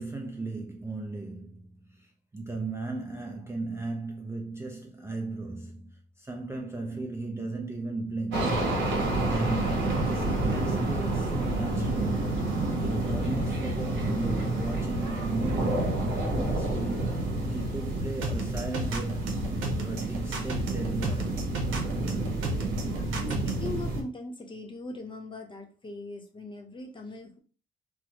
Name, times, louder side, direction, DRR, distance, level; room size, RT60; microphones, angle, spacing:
voice 1, 0.0-8.7 9.3-12.1 12.8-16.0 16.3-19.3 19.8-21.4, right 3 dB, 15° right, 0.4 m, -36 dB
sound 1, 8.3-24.0, right 2 dB, 65° right, 1.1 m, -29 dB
Telephone, 9.7-10.9 11.7-12.9 13.7-14.9, left 13 dB, 75° left, 0.4 m, -47 dB
sound 2, 18.2-23.7, right 3 dB, 85° right, 0.7 m, -33 dB
voice 2, 23.1-27.4, left 2 dB, 25° left, 0.8 m, -40 dB
3.4 x 2.1 x 3.0 m
cardioid pair, 90°, 20 cm